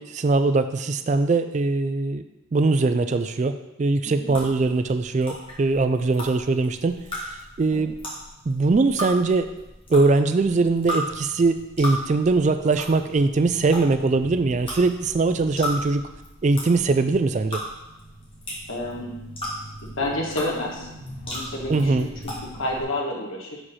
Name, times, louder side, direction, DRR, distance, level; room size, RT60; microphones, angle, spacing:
voice 1, 0.0-2.2 2.5-7.0 7.6-7.9 8.5-9.5 9.9-16.0 16.4-17.6 21.7-22.1, right 3 dB, 35° right, 9 dB, 0.3 m, -21 dB
sound 1, 4.3-22.8, equal, 25° left, 1.9 m, -36 dB
voice 2, 18.7-19.1 20.0-20.9 21.3-23.6, left 1 dB, 70° left, -1 dB, 1.6 m, -30 dB
6.4 x 5.0 x 5.6 m, 0.94 s
head